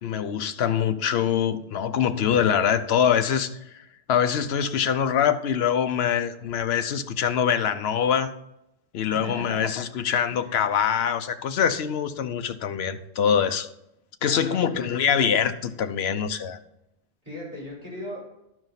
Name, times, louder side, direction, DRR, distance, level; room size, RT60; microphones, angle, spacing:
voice 1, 0.0-3.8 4.1-8.3 8.9-13.7 14.2-16.6, left 8 dB, 70° left, 0.9 m, -24 dB
voice 2, 9.2-9.7 10.3-10.6 14.2-15.0 17.2-18.2, equal, 35° right, 3.8 m, -38 dB
12.5 x 4.9 x 3.9 m
omnidirectional pair, 1.1 m